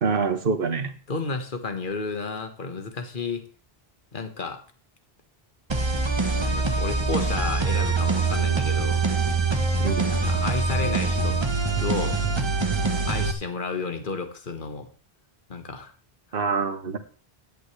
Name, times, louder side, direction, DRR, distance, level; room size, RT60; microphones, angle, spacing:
voice 1, 0.0-0.9 9.8-10.1 16.3-17.0, right 5 dB, 60° right, 8 dB, 1.4 m, -25 dB
voice 2, 1.1-3.4 4.1-4.6 6.4-9.1 10.1-11.4 11.8-12.2 13.0-14.9 15.5-15.9, left 4 dB, 55° left, 7 dB, 1.6 m, -32 dB
sound 1, 5.7-13.3, right 3 dB, 25° right, 1.1 m, -24 dB
14.5 x 10.5 x 3.3 m, 0.39 s
omnidirectional pair, 1.0 m